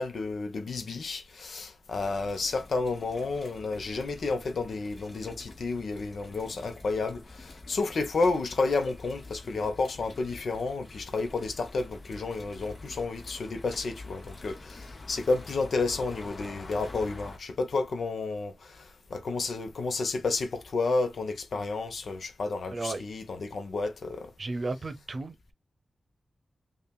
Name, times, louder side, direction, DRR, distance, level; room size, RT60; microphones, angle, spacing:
voice 1, 0.0-24.3, left 3 dB, 75° left, 0.8 m, -31 dB
sound 1, 1.9-17.4, left 2 dB, 45° left, 0.9 m, -47 dB
voice 2, 22.7-23.0 24.4-25.5, right 3 dB, 50° right, 0.7 m, -34 dB
5.4 x 2.4 x 2.3 m
wide cardioid pair, 70°, 0 cm